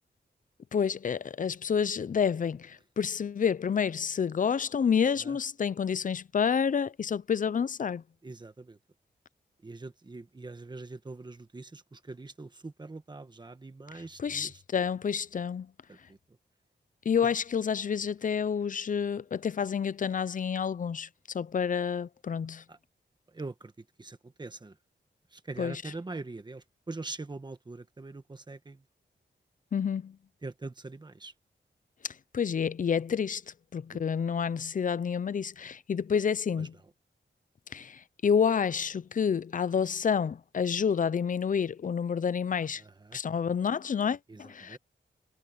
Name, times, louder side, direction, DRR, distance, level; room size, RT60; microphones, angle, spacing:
voice 1, 0.7-8.0 13.9-15.7 17.1-21.1 21.3-22.6 25.6-25.8 29.7-30.2 32.0-33.4 33.7-36.7 37.7-42.8 43.1-44.8, left 7 dB, 45° left, 0.5 m, -29 dB
voice 2, 8.2-8.8 9.6-14.6 15.9-16.2 17.2-17.3 22.7-22.8 23.3-24.7 25.3-28.8 30.4-31.3 33.9-34.0 36.6-36.7 42.8-43.2 44.3-44.8, right 3 dB, 25° right, 1.3 m, -43 dB
wide cardioid pair, 175°, 19 cm